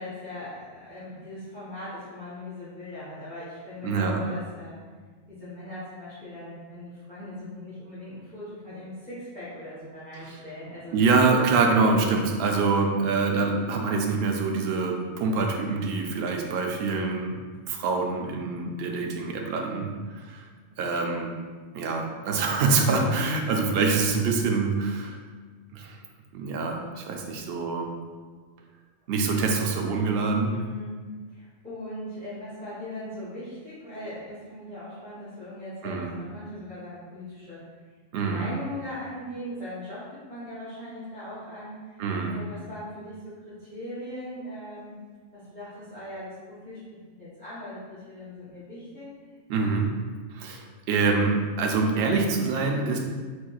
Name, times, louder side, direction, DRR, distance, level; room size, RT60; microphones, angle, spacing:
voice 1, 0.0-4.8 5.3-11.0 30.5-31.0 31.3-37.6 38.2-42.0 42.2-45.0 45.3-46.8 47.1-49.1, left 1 dB, 10° left, -13 dB, 0.9 m, -40 dB
voice 2, 3.8-4.2 10.9-17.4 17.7-19.9 20.1-20.4 20.8-21.3 21.7-25.2 25.7-26.0 26.3-27.9 29.1-30.5 35.8-36.1 38.1-38.5 42.0-42.3 49.5-49.9 50.3-53.0, right 4 dB, 65° right, 1 dB, 0.7 m, -25 dB
4.4 x 3.0 x 2.3 m, 1.4 s
omnidirectional pair, 1.4 m